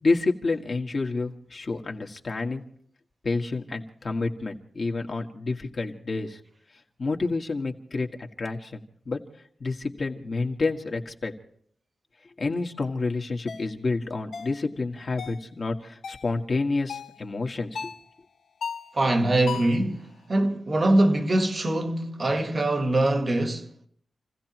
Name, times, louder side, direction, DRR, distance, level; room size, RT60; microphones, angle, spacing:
voice 1, 0.0-2.6 3.2-6.4 7.0-8.1 8.4-9.2 9.6-11.3 12.4-17.9, left 3 dB, 45° left, 1.7 m, -29 dB
sound 1, 13.5-13.7 14.3-14.6 15.2-15.5 16.0-16.3 16.9-17.2 17.7-18.0 18.6-18.9 19.5-19.8, left 6 dB, 85° left, 0.9 m, -36 dB
voice 2, 18.9-23.7, right 1 dB, 35° right, 1.4 m, -23 dB
28.5 x 16.5 x 3.0 m
wide cardioid pair, 125°, 0 cm